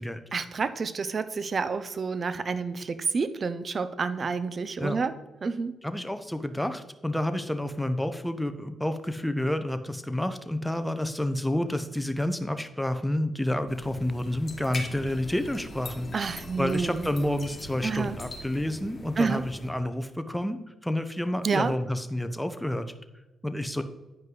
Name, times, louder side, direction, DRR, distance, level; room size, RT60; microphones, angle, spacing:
voice 1, 0.3-5.1 5.4-5.7 16.1-17.0 17.8-18.2 19.2-19.4 21.4-21.7, right 5 dB, 50° right, 13 dB, 0.7 m, -29 dB
voice 2, 5.8-16.1 16.6-22.9 23.4-23.8, left 1 dB, 5° left, 9 dB, 0.9 m, -29 dB
sound 1, 13.7-19.7, left 2 dB, 40° left, 2.0 m, -42 dB
9.4 x 5.3 x 3.9 m, 1.1 s
supercardioid pair, 55°, 0 cm